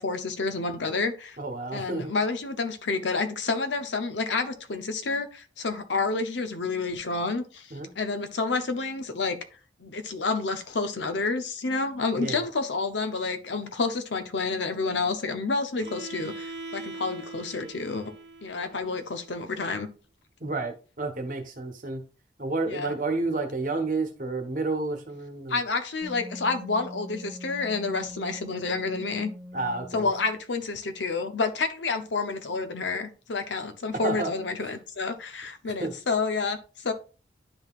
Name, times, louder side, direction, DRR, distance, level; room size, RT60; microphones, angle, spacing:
voice 1, 0.0-1.4 1.7-7.7 8.0-9.4 9.8-18.1 18.4-19.9 22.7-22.9 25.5-29.3 29.9-36.9, left 4 dB, 85° left, 0.7 m, -29 dB
voice 2, 1.4-2.1 7.7-7.9 12.1-12.4 20.4-22.0 22.4-25.6 29.5-30.1 34.0-34.3 34.6-34.7 35.7-35.9, right 3 dB, 45° right, 1.0 m, -30 dB
Bowed string instrument, 15.8-19.7, right 3 dB, 75° right, 0.7 m, -42 dB
Wind instrument woodwind instrument, 26.0-30.4, equal, ahead, 1.2 m, -43 dB
10.5 x 3.8 x 2.4 m
head